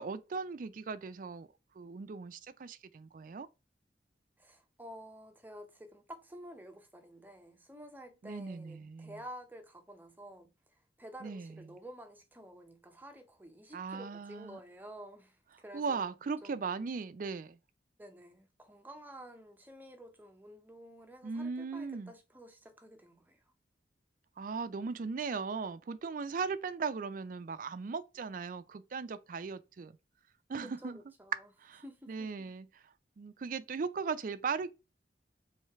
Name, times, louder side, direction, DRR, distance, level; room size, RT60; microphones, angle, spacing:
voice 1, 0.0-1.5 1.7-3.5 8.2-9.2 11.2-11.6 13.7-14.6 15.7-17.6 21.2-22.1 24.4-30.0 30.5-31.0 31.6-34.7, right 5 dB, 50° right, 0.4 m, -38 dB
voice 2, 4.4-16.1 16.4-16.7 18.0-23.4 30.6-31.4 31.8-32.5, equal, 10° right, 0.6 m, -51 dB
3.2 x 3.1 x 4.5 m
head